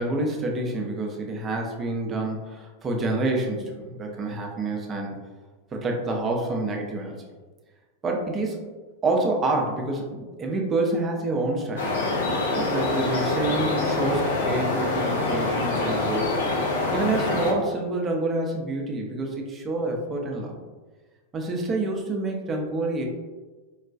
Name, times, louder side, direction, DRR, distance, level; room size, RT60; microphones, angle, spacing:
voice 1, 0.0-5.1 5.7-7.2 8.0-8.6 9.0-11.9 12.5-16.3 16.9-20.6 21.3-23.0, right 2 dB, 25° right, 1 dB, 0.6 m, -27 dB
sound 1, 11.7-17.5, left 2 dB, 60° left, 0.6 m, -25 dB
4.7 x 2.3 x 2.3 m, 1.3 s
figure-of-eight pair, 90°, 0 cm